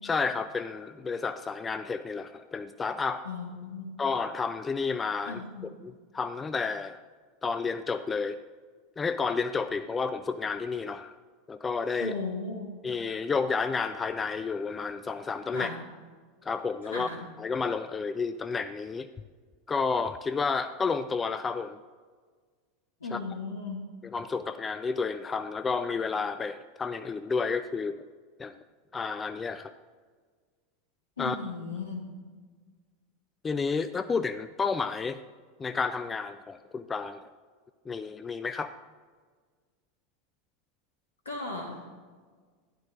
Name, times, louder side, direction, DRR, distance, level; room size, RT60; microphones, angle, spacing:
voice 1, 0.0-3.3 4.0-7.0 7.4-8.4 9.0-11.1 11.5-12.1 12.8-15.7 16.4-17.1 17.4-19.1 19.7-21.8 23.1-23.2 24.0-28.0 28.4-28.5 28.9-29.7 31.2-31.4 33.4-35.2 35.6-37.2 37.9-38.7, left 5 dB, 20° left, 11 dB, 0.3 m, -31 dB
voice 2, 3.2-3.9 5.3-5.7 12.0-12.7 15.5-15.7 16.9-17.2 23.0-23.8 31.2-32.0 41.2-41.8, left 3 dB, 75° left, 0 dB, 1.2 m, -36 dB
12.5 x 10.5 x 2.5 m, 1.5 s
figure-of-eight pair, 80°, 0 cm